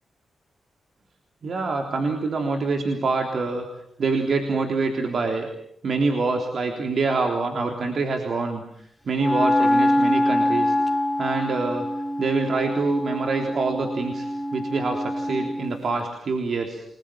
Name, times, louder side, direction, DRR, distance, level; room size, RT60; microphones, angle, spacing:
voice 1, 1.4-3.7 4.0-5.5 5.8-8.6 9.1-11.9 12.2-16.8, right 3 dB, 65° right, 3 dB, 3.6 m, -25 dB
Wind instrument woodwind instrument, 9.1-15.8, left 1 dB, 15° left, 2.5 m, -24 dB
29.5 x 21.5 x 7.5 m, 0.70 s
cardioid pair, 75°, 0 cm